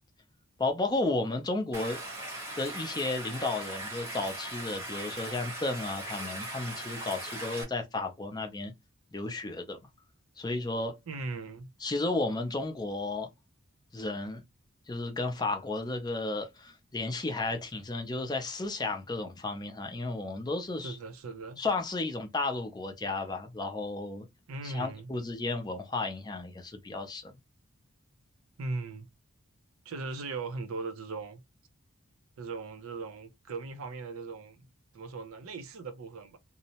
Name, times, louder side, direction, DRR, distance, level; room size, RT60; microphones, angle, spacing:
voice 1, 0.6-2.0 2.6-8.7 9.1-9.8 10.4-11.0 11.8-13.3 13.9-14.4 14.9-21.0 21.6-24.3 24.6-27.4, left 2 dB, 20° left, 0.5 m, -33 dB
Stream, 1.7-7.6, right 1 dB, 15° right, 0.9 m, -39 dB
voice 2, 11.1-11.7 20.8-21.6 24.5-25.1 28.6-29.1 29.9-31.4 32.4-34.7 34.9-36.4, right 3 dB, 75° right, 0.5 m, -38 dB
2.7 x 2.0 x 2.8 m
head